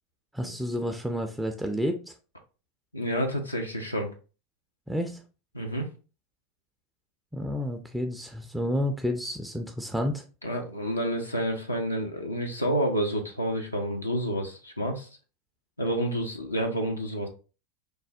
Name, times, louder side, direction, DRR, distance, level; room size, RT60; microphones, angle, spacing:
voice 1, 0.3-2.0 4.9-5.2 7.3-10.2, equal, 5° right, 5 dB, 0.3 m, -30 dB
voice 2, 2.9-4.1 5.5-5.9 10.4-15.1 15.8-17.3, equal, 90° left, 2 dB, 0.4 m, -29 dB
3.2 x 2.1 x 2.6 m, 0.34 s
figure-of-eight pair, 80°, 0 cm